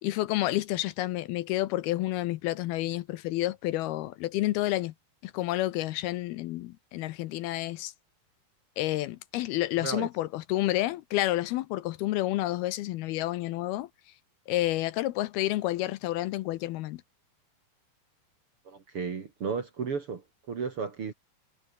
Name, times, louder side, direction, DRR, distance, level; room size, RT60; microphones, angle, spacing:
voice 1, 0.0-4.9 5.2-7.9 8.8-13.9 14.5-17.0, left 16 dB, 75° left, 2.6 m, -30 dB
voice 2, 18.7-20.2 20.5-21.1, right 5 dB, 45° right, 2.2 m, -33 dB
omnidirectional pair, 4.7 m